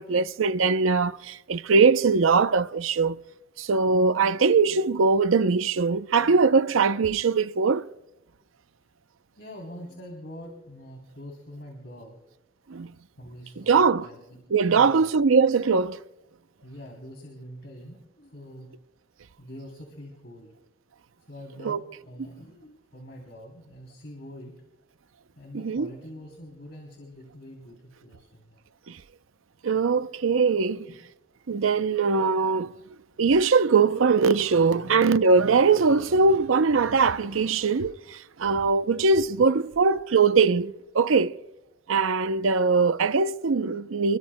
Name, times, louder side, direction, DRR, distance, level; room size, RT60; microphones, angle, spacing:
voice 1, 0.0-3.2 3.6-7.9 12.7-12.9 13.6-14.1 14.5-16.0 21.6-21.8 25.5-25.9 28.9-29.0 29.6-30.9 31.5-32.8 33.2-41.3 41.9-44.2, right 4 dB, 80° right, 0.6 m, -21 dB
voice 2, 9.4-12.2 13.2-14.2 14.5-15.1 16.6-18.8 19.4-20.5 21.3-24.6 25.4-28.6 30.4-31.0 34.6-35.0, equal, 55° left, 3.2 m, -44 dB
29.0 x 22.0 x 2.2 m
head